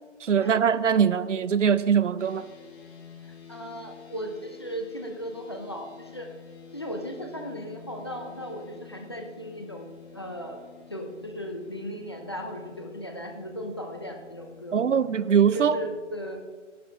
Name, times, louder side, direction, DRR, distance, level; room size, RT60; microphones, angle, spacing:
voice 1, 0.2-2.4 14.7-15.8, right 7 dB, 70° right, 0.7 m, -22 dB
sound 1, 2.2-16.0, left 7 dB, 60° left, 3.8 m, -49 dB
voice 2, 3.2-6.3 6.7-10.6 10.9-14.8 15.5-16.4, equal, 20° left, 0.7 m, -37 dB
13.0 x 11.5 x 3.7 m
hypercardioid pair, 175°, 37 cm